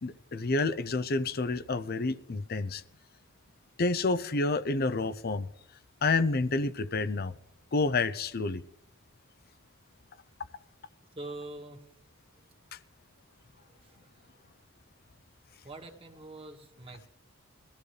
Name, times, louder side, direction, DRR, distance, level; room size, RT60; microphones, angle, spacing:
voice 1, 0.0-2.8 3.8-5.5 6.0-7.3 7.7-8.6, left 3 dB, 50° left, 14 dB, 0.6 m, -29 dB
voice 2, 11.2-11.9 13.6-14.1 15.6-17.1, right 2 dB, 25° right, 2 dB, 1.8 m, -44 dB
22.5 x 14.5 x 3.3 m, 0.72 s
head